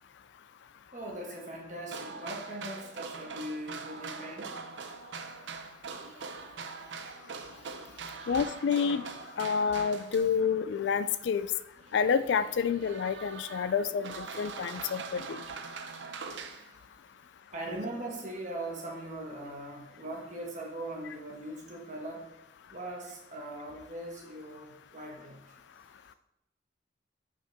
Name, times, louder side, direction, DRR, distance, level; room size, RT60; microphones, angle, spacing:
voice 1, 0.9-4.5 7.0-8.2 15.6-15.9 17.5-22.3 22.7-25.6, right 1 dB, 40° right, -1 dB, 1.4 m, -41 dB
sound 1, 1.9-10.5 11.1-11.2 11.7-16.7, right 4 dB, 75° right, 0.6 m, -43 dB
voice 2, 8.3-9.0 9.4-11.5 11.9-15.4, left 6 dB, 70° left, 13 dB, 0.3 m, -28 dB
8.3 x 4.8 x 3.5 m, 0.86 s
head